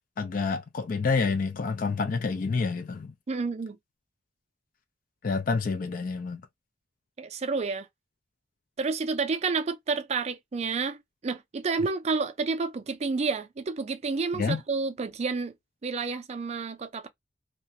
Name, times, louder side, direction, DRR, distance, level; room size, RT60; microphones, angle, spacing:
voice 1, 0.2-3.1 5.2-6.4 14.3-14.6, left 4 dB, 50° left, 0.4 m, -28 dB
voice 2, 3.3-3.8 7.2-7.9 8.8-15.5 15.8-17.1, right 4 dB, 35° right, 0.4 m, -30 dB
2.4 x 2.1 x 2.7 m
head